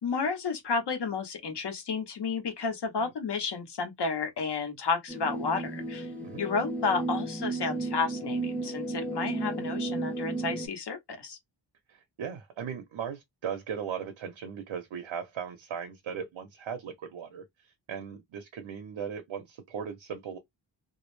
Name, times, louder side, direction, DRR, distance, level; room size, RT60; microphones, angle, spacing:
voice 1, 0.0-6.1 6.4-11.4, left 4 dB, 60° left, 0.9 m, -31 dB
sound 1, 5.1-10.7, right 2 dB, 5° left, 0.5 m, -34 dB
voice 2, 11.9-20.4, right 7 dB, 85° right, 0.7 m, -38 dB
2.3 x 2.0 x 3.0 m
wide cardioid pair, 155°, 45 cm